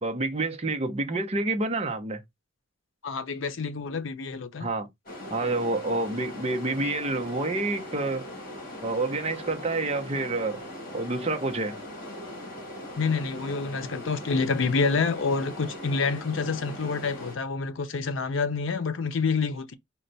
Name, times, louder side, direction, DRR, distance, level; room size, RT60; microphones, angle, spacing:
voice 1, 0.0-2.2 4.6-4.9 5.3-8.3 8.8-10.6 10.9-11.8, right 2 dB, 30° right, 0.7 m, -28 dB
voice 2, 3.0-4.7 13.0-19.7, left 4 dB, 80° left, 0.6 m, -28 dB
sound 1, 5.1-17.4, left 1 dB, 45° left, 1.9 m, -40 dB
4.3 x 2.2 x 3.9 m
head